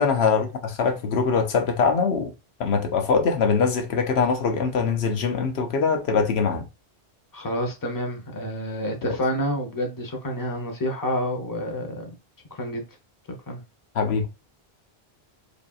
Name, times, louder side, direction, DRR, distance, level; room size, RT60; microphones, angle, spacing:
voice 1, 0.0-2.3 2.6-6.7 9.0-9.2 13.9-14.3, left 5 dB, 75° left, 0.9 m, -23 dB
voice 2, 7.3-12.1 12.5-12.8 13.5-13.6, equal, 20° left, 0.9 m, -28 dB
5.0 x 2.7 x 2.4 m
omnidirectional pair, 1.1 m